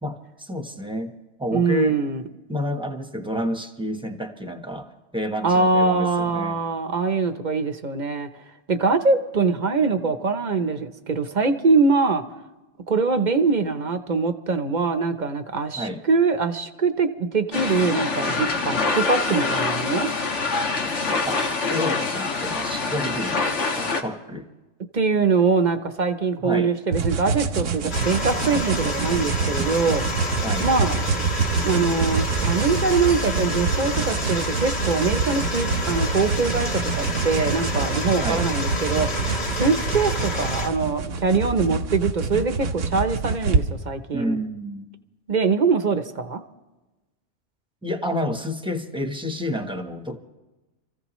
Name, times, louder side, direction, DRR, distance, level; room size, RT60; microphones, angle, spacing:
voice 1, 0.0-2.0 2.5-6.6 15.8-16.0 21.2-23.4 23.8-24.5 26.4-26.7 30.4-30.7 38.2-38.5 44.1-44.9 47.8-50.2, equal, 5° right, 5 dB, 1.0 m, -30 dB
voice 2, 1.5-2.2 5.4-8.3 8.7-12.2 12.9-20.1 24.9-30.0 30.6-31.0 31.6-44.4 45.3-46.4, right 4 dB, 40° right, 9 dB, 0.9 m, -23 dB
sound 1, 17.5-24.0, left 3 dB, 75° left, 1.7 m, -25 dB
sound 2, 26.9-43.6, right 4 dB, 90° right, 1.3 m, -27 dB
sound 3, 27.9-40.7, equal, 60° left, 2.0 m, -28 dB
28.0 x 15.0 x 3.1 m, 1.1 s
omnidirectional pair, 1.2 m